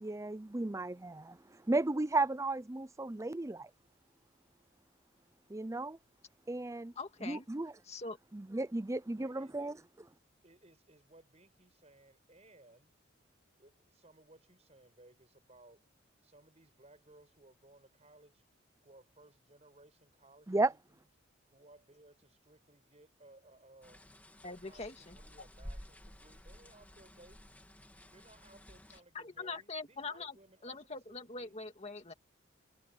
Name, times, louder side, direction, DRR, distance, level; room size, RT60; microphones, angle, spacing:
voice 1, 0.0-3.7 5.5-6.0 6.5-6.9 7.2-7.7 8.3-9.8 20.5-20.7, right 2 dB, 15° right, 0.5 m, -34 dB
voice 2, 7.0-7.5 7.9-8.2 24.4-25.2 29.1-30.3 30.6-32.1, left 3 dB, 35° left, 2.1 m, -43 dB
voice 3, 9.1-9.8 10.4-12.9 13.6-15.8 16.2-18.4 18.8-20.8 21.5-24.0 24.4-27.6 28.1-30.8 31.1-31.6, right 2 dB, 35° right, 7.7 m, -61 dB
sound 1, 23.8-29.0, equal, 10° left, 2.7 m, -52 dB
head